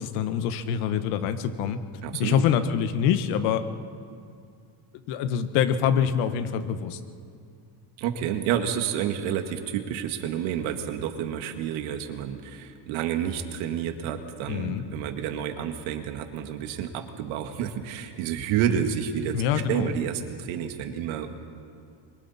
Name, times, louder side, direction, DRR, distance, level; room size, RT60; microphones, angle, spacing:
voice 1, 0.0-1.8 2.2-3.6 5.1-7.0 14.5-14.8 19.3-19.9, left 8 dB, 90° left, 9 dB, 1.4 m, -25 dB
voice 2, 2.0-2.4 8.0-21.3, right 9 dB, 90° right, 6 dB, 2.0 m, -29 dB
27.0 x 24.5 x 4.3 m, 2.3 s
cardioid pair, 125°, 46 cm